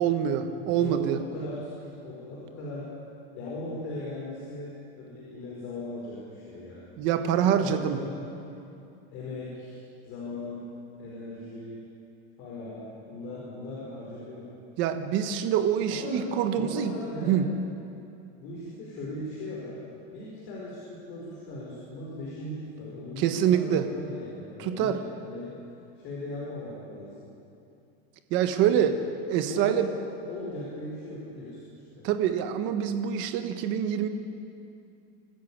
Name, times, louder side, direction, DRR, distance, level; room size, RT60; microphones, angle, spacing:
voice 1, 0.0-1.2 7.0-8.0 14.8-16.9 17.2-17.5 23.2-23.9 24.6-25.0 28.3-29.0 29.3-29.9 32.0-34.1, right 9 dB, 35° right, 8 dB, 1.3 m, -25 dB
voice 2, 0.6-2.9 3.3-4.7 5.0-6.9 7.4-8.3 9.1-9.8 10.0-10.7 11.0-11.8 12.4-14.5 15.9-17.5 18.4-25.6 25.9-27.3 28.6-28.9 29.5-30.0 30.2-31.6 31.9-32.1, left 2 dB, 35° left, -6 dB, 4.9 m, -38 dB
24.5 x 13.5 x 8.7 m, 2.6 s
supercardioid pair, 175°, 32 cm